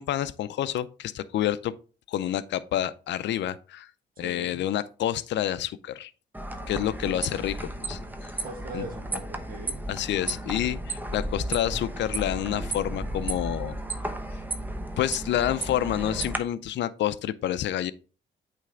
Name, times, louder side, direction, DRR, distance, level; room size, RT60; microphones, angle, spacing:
voice 1, 0.0-1.7 2.1-3.9 4.2-6.1 6.7-8.3 8.7-8.8 9.9-13.8 15.0-17.9, left 12 dB, 65° left, 0.5 m, -28 dB
voice 2, 4.2-4.6 7.0-7.2 8.4-9.8, right 2 dB, 45° right, 1.8 m, -40 dB
sound 1, 6.3-16.4, right 1 dB, 10° right, 0.8 m, -33 dB
8.3 x 3.3 x 3.7 m
cardioid pair, 90°, 20 cm